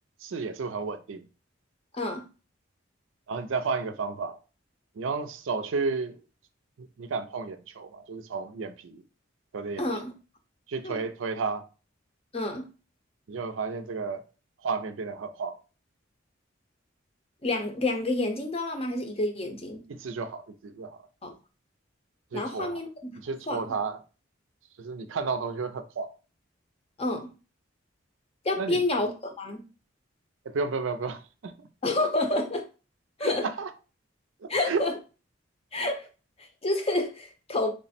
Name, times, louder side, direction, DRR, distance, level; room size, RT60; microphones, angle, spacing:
voice 1, 0.2-1.3 3.3-4.4 5.0-6.2 6.8-9.0 9.5-9.8 10.7-11.7 13.3-14.2 14.6-15.6 19.9-21.1 22.3-22.8 23.2-24.0 24.8-26.1 28.6-28.8 30.4-31.7 33.2-33.7 34.4-34.8, right 4 dB, 75° right, 0.4 m, -32 dB
voice 2, 1.9-2.2 9.8-10.1 10.8-11.0 12.3-12.7 17.4-19.8 21.2-21.3 22.3-23.7 27.0-27.3 28.4-29.6 31.8-32.7 33.2-33.5 34.5-35.0 35.7-36.1 36.4-37.7, left 2 dB, 30° left, 0.6 m, -29 dB
3.2 x 2.0 x 4.1 m
head